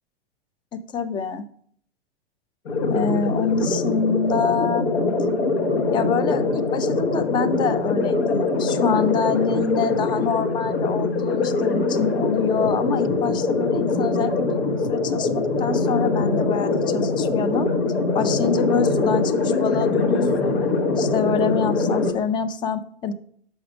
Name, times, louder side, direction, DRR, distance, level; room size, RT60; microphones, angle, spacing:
voice 1, 0.7-1.5 2.9-4.9 5.9-17.7 18.1-20.6 21.0-23.1, left 6 dB, 15° left, 12 dB, 0.3 m, -26 dB
sound 1, 2.7-22.1, left 3 dB, 75° left, 1.3 m, -23 dB
6.2 x 4.9 x 5.0 m, 0.62 s
figure-of-eight pair, 95°, 32 cm